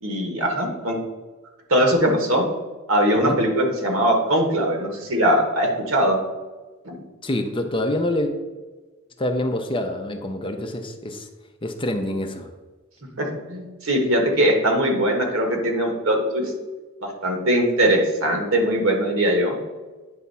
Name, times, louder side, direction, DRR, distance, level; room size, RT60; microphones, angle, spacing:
voice 1, 0.0-1.0 1.7-2.4 2.9-6.2 6.8-7.0 13.2-16.5 17.0-19.6, right 1 dB, 75° right, 2 dB, 1.5 m, -21 dB
voice 2, 7.2-8.3 9.2-11.3 11.6-12.5, left 1 dB, 25° left, 5 dB, 0.6 m, -26 dB
9.4 x 3.5 x 5.5 m, 1.3 s
head